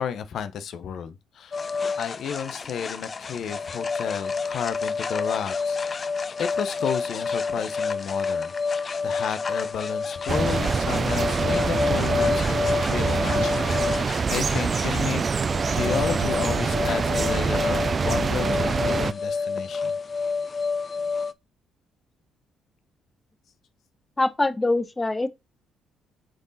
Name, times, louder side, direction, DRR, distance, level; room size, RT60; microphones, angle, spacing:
voice 1, 0.0-1.6 2.0-6.0 6.4-8.5 9.0-15.2 15.7-19.9, left 7 dB, 65° left, 0.8 m, -32 dB
sound 1, 1.5-21.3, left 5 dB, 40° left, 0.5 m, -29 dB
sound 2, 10.3-19.1, right 5 dB, 40° right, 0.3 m, -25 dB
voice 2, 24.2-25.3, left 2 dB, 15° left, 0.9 m, -23 dB
7.9 x 3.9 x 4.1 m
supercardioid pair, 75°, 0 cm